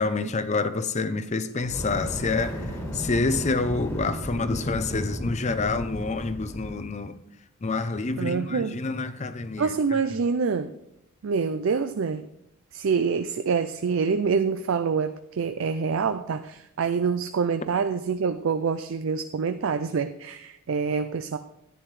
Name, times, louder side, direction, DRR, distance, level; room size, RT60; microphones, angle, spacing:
voice 1, 0.0-2.7 2.9-7.2 7.6-10.0, left 3 dB, 35° left, 0.6 m, -27 dB
Fire, 1.6-6.9, equal, 15° left, 1.8 m, -35 dB
voice 2, 8.2-8.8 9.6-10.7 11.2-12.2 12.7-21.4, right 5 dB, 65° right, 0.4 m, -26 dB
11.0 x 9.7 x 3.2 m
head